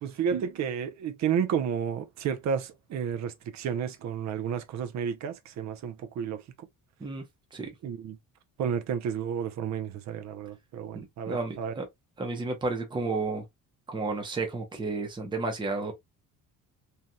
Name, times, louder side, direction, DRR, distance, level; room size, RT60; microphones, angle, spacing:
voice 1, 0.0-6.4 7.8-8.2 8.6-11.7, right 7 dB, 55° right, 0.6 m, -31 dB
voice 2, 10.9-11.8 12.2-13.4 13.9-15.9, right 3 dB, 15° right, 0.8 m, -32 dB
3.2 x 2.8 x 2.2 m
cardioid pair, 160°, 34 cm